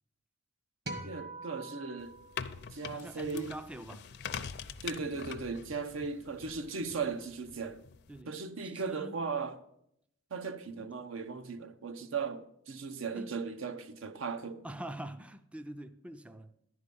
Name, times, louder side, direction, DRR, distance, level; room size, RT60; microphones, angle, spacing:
sound 1, 0.9-3.3, right 2 dB, 50° right, 1.5 m, -45 dB
voice 1, 1.0-2.1 2.7-3.5 4.8-7.8 8.3-9.6 10.3-14.6, right 4 dB, 80° right, 0.7 m, -37 dB
sound 2, 2.0-8.2, left 7 dB, 55° left, 0.5 m, -44 dB
voice 2, 2.9-4.1 8.1-8.4 8.6-9.2 13.1-13.3 14.6-16.5, right 1 dB, 5° right, 0.3 m, -44 dB
10.5 x 4.8 x 6.8 m
head